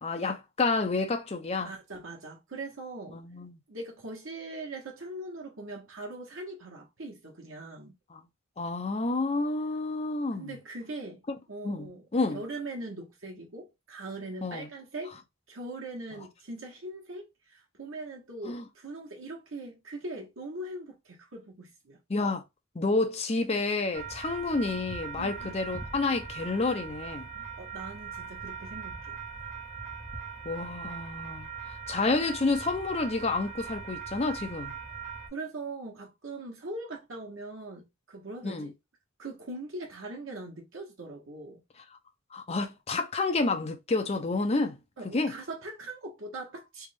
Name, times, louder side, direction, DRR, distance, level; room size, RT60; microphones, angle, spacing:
voice 1, 0.0-1.7 3.1-3.6 8.1-8.2 8.6-10.5 11.6-12.4 14.4-14.7 18.4-18.6 22.1-22.4 22.7-27.3 30.4-34.8 38.4-38.7 42.3-44.8 45.1-45.3, left 3 dB, 30° left, 0.6 m, -29 dB
voice 2, 1.6-3.2 3.7-7.9 10.3-11.2 11.5-15.2 15.5-22.0 25.2-25.6 27.3-29.2 35.3-38.7 39.2-41.6 45.0-46.9, right 2 dB, 80° right, 1.3 m, -41 dB
sound 1, 23.9-35.3, right 6 dB, 35° right, 1.1 m, -40 dB
3.4 x 2.5 x 3.3 m
head